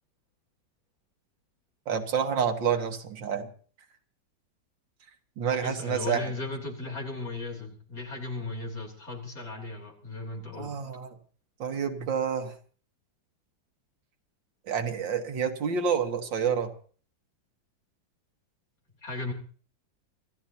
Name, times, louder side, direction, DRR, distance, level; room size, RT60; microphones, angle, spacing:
voice 1, 1.9-3.5 5.4-6.3 10.5-11.2 11.6-12.6 14.7-16.7, right 7 dB, 80° right, 6 dB, 2.2 m, -28 dB
voice 2, 5.5-10.8 19.0-19.3, left 3 dB, 50° left, 0 dB, 4.1 m, -36 dB
26.5 x 14.5 x 2.9 m, 0.43 s
omnidirectional pair, 2.0 m